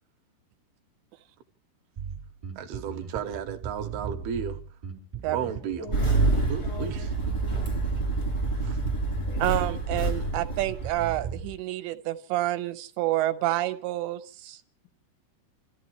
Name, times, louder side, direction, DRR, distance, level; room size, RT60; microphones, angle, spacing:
Bass guitar, 2.0-11.5, right 7 dB, 15° right, 4.1 m, -37 dB
voice 1, 2.6-4.6 5.3-5.9 6.5-7.1 8.6-8.8, right 8 dB, 70° right, 2.9 m, -33 dB
voice 2, 5.4-6.3 6.6-7.1 7.4-7.8 9.3-9.4, left 4 dB, 65° left, 2.8 m, -44 dB
Engine starting, 5.9-11.4, right 3 dB, 25° left, 0.6 m, -27 dB
voice 3, 9.4-14.6, right 15 dB, 90° right, 3.2 m, -28 dB
30.0 x 14.5 x 3.2 m
omnidirectional pair, 5.0 m